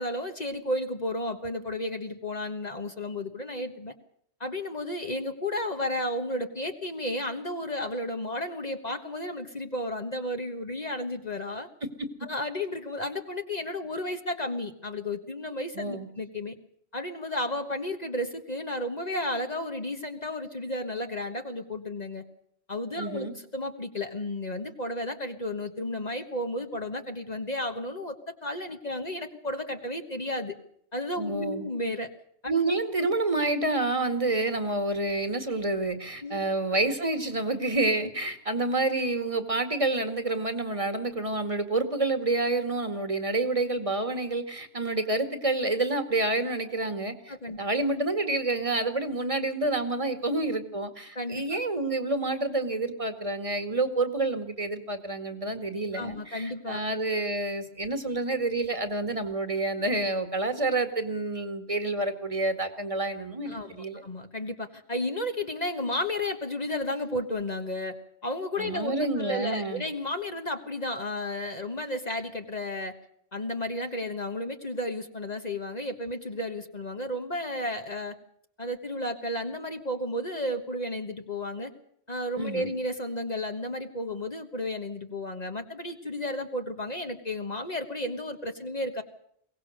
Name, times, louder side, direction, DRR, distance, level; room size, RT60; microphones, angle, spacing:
voice 1, 0.0-3.9 4.4-11.7 12.2-16.5 16.9-22.2 22.7-30.5 30.9-32.1 36.2-36.4 47.3-47.6 51.1-51.6 55.9-56.8 63.5-63.7 64.0-68.0 68.2-72.9 73.3-78.2 78.6-81.7 82.1-89.0, left 1 dB, 40° left, 5 dB, 1.5 m, -33 dB
voice 2, 11.8-12.1 15.7-16.1 23.0-23.3 31.2-31.7 32.5-64.0 68.6-69.8 82.4-82.7, right 2 dB, 30° right, 8 dB, 2.1 m, -28 dB
22.5 x 18.0 x 6.6 m, 0.68 s
omnidirectional pair, 1.1 m